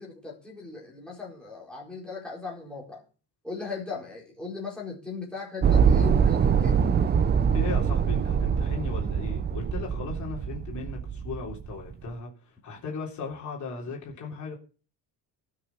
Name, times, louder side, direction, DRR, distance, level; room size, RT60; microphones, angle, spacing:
voice 1, 0.0-3.0 3.4-6.8, left 4 dB, ahead, 4.4 m, -38 dB
sound 1, 5.6-11.9, right 7 dB, 25° right, 0.6 m, -24 dB
voice 2, 7.5-14.6, left 4 dB, 45° left, 3.5 m, -37 dB
18.5 x 6.3 x 5.9 m
cardioid pair, 170°, 40 cm